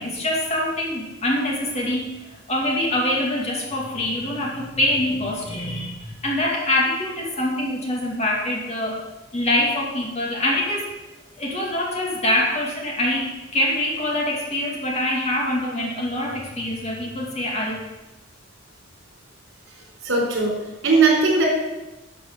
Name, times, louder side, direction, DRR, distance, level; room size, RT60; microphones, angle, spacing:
voice 1, 0.0-2.1 2.5-9.0 9.3-10.9 11.4-17.9, left 1 dB, 30° left, -2 dB, 2.2 m, -24 dB
voice 2, 20.0-20.6 20.8-21.4, right 4 dB, 75° right, -3 dB, 4.1 m, -18 dB
11.5 x 6.7 x 6.7 m, 1.1 s
head